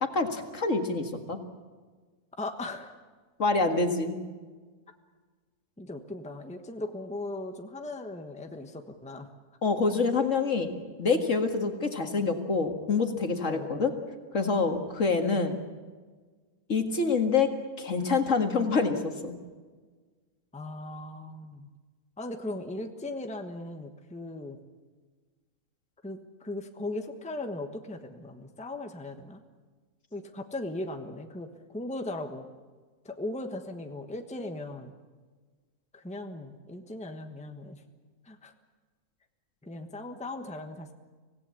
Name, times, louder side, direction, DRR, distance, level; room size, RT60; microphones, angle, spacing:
voice 1, 0.0-1.4 3.4-4.2 9.6-10.7 11.0-13.9 14.3-15.6 16.7-17.5 17.8-19.3, left 4 dB, 55° left, 5 dB, 2.2 m, -26 dB
voice 2, 2.4-2.9 5.8-9.3 13.5-13.9 20.5-21.7 22.2-24.6 26.0-29.4 30.1-32.5 33.0-35.0 35.9-37.8 38.2-38.5 39.6-40.9, left 2 dB, 5° left, 5 dB, 1.2 m, -38 dB
25.5 x 17.0 x 8.5 m, 1.4 s
omnidirectional pair, 1.6 m